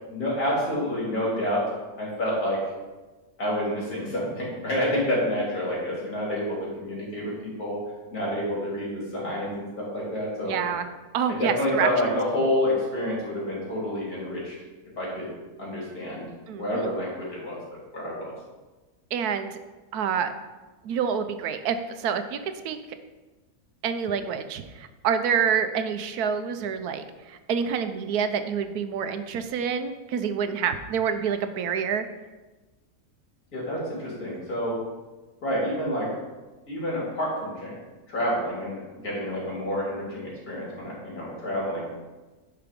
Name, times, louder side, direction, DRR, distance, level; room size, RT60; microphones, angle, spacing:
voice 1, 0.1-1.7 2.0-2.6 3.4-7.8 8.1-10.6 11.3-14.5 15.0-15.3 15.6-16.2 16.6-17.6 17.9-18.3 33.5-34.8 35.4-36.1 36.7-37.8 38.1-41.9, left 1 dB, 75° left, -5 dB, 3.5 m, -28 dB
voice 2, 10.5-10.9 11.1-12.2 16.5-16.9 19.1-19.6 19.9-20.3 20.8-22.4 22.6-22.8 23.8-32.0, right 7 dB, 85° right, 10 dB, 1.2 m, -27 dB
10.5 x 5.0 x 5.2 m, 1.2 s
omnidirectional pair, 1.6 m